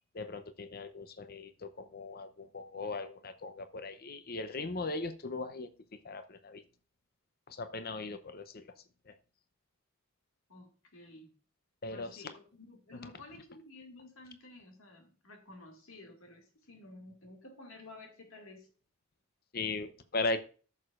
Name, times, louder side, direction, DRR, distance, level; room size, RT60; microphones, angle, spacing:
voice 1, 0.1-5.7 6.0-6.6 7.5-8.7 9.1-9.2 11.8-12.3 19.5-20.4, left 3 dB, 45° left, 11 dB, 0.7 m, -38 dB
voice 2, 10.5-11.3 11.9-18.7, left 2 dB, 80° left, 3 dB, 2.2 m, -52 dB
14.0 x 6.5 x 2.5 m, 0.37 s
head